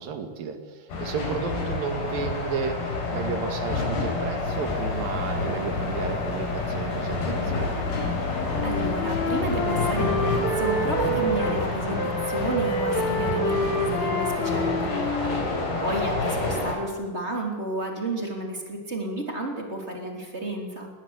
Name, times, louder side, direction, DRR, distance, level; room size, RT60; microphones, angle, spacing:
voice 1, 0.0-7.8 15.7-16.1, right 6 dB, 60° right, 7 dB, 3.7 m, -33 dB
sound 1, 0.9-16.8, left 3 dB, 80° left, 6.6 m, -29 dB
sound 2, 4.4-11.7, left 4 dB, 55° left, 1.9 m, -34 dB
Wind instrument woodwind instrument, 8.1-11.6 12.0-16.0, equal, 35° left, 3.0 m, -28 dB
voice 2, 8.6-15.4 15.8-20.9, right 1 dB, 15° right, 2 dB, 3.0 m, -31 dB
19.5 x 19.0 x 8.2 m, 1.4 s
omnidirectional pair, 4.7 m